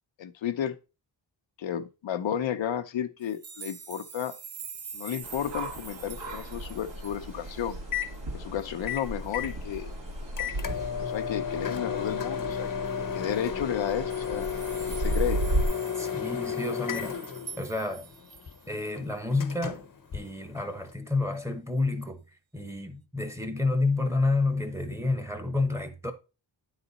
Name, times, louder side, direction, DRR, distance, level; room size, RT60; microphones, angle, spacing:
voice 1, 0.2-0.8 1.6-4.3 4.9-7.8 8.3-9.9 11.1-12.7 13.1-14.5 15.0-15.4, left 9 dB, 80° left, 0.7 m, -32 dB
sound 1, 3.2-7.7 8.1-8.2 8.6-8.7 9.0-9.5 10.6-10.8 12.5-12.6 12.9-13.0 13.8-18.7 19.2-19.3, right 6 dB, 35° right, 0.6 m, -45 dB
Microwave oven, 5.2-20.9, left 7 dB, 45° left, 0.8 m, -35 dB
sound 2, 5.2-15.6, right 1 dB, 75° right, 2.2 m, -35 dB
voice 2, 16.0-17.2 17.6-18.1 18.7-19.8 20.1-22.2 22.5-26.1, left 3 dB, 5° right, 1.0 m, -29 dB
8.9 x 4.1 x 4.0 m
wide cardioid pair, 100°, 45 cm